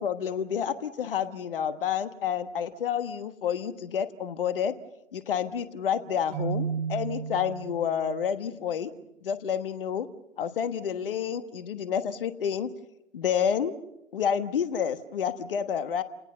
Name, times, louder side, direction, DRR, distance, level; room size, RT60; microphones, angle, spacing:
voice 1, 0.0-4.7 5.1-8.9 9.2-10.1 10.4-12.7 13.1-13.7 14.1-16.0, left 8 dB, 45° left, 12 dB, 1.3 m, -29 dB
Keyboard (musical), 6.3-8.2, right 6 dB, 30° right, 1.4 m, -33 dB
29.5 x 19.5 x 6.6 m, 0.88 s
figure-of-eight pair, 135°, 39 cm